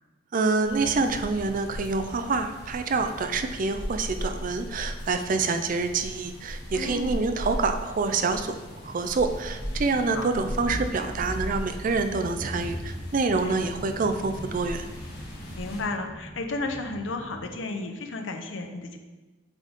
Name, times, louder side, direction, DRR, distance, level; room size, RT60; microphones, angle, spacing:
voice 1, 0.3-8.6 8.8-14.9, right 4 dB, 45° right, 7 dB, 0.4 m, -27 dB
sound 1, 0.6-15.8, equal, 60° left, 1.5 m, -38 dB
voice 2, 6.7-7.2 10.1-10.3 13.4-13.6 15.5-19.0, left 2 dB, 85° left, 5 dB, 0.7 m, -33 dB
sound 2, 10.6-17.5, equal, 15° left, 1.3 m, -40 dB
8.1 x 4.1 x 3.6 m, 1.2 s
head